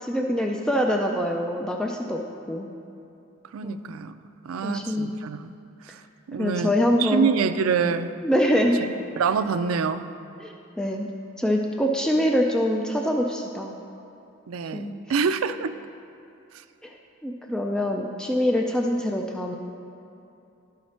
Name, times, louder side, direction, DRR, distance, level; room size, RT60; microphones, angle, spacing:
voice 1, 0.0-2.2 2.5-2.7 3.6-3.8 4.6-5.2 6.4-7.3 8.2-8.8 10.4-11.1 11.4-13.7 14.7-15.0 16.8-16.9 17.2-19.6, equal, 5° left, 1 dB, 0.4 m, -24 dB
voice 2, 3.5-4.1 4.4-5.5 5.8-6.0 6.3-6.7 7.0-8.1 9.2-10.1 14.5-15.7, right 6 dB, 85° right, 10 dB, 0.4 m, -26 dB
12.0 x 5.7 x 4.3 m, 2.7 s
head